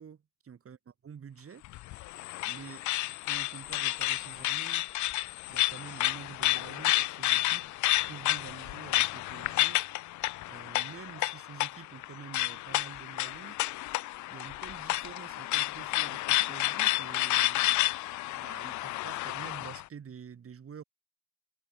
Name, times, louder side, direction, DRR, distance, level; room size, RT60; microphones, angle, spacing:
voice 1, 0.0-1.6 2.4-2.9 3.2-4.9 5.5-7.8 8.1-9.8 10.5-13.6 14.3-17.7 18.4-20.8, right 7 dB, 50° right, 4.3 m, -48 dB
sound 1, 1.6-19.8, left 17 dB, 75° left, 0.5 m, -31 dB
cardioid pair, 90°, 30 cm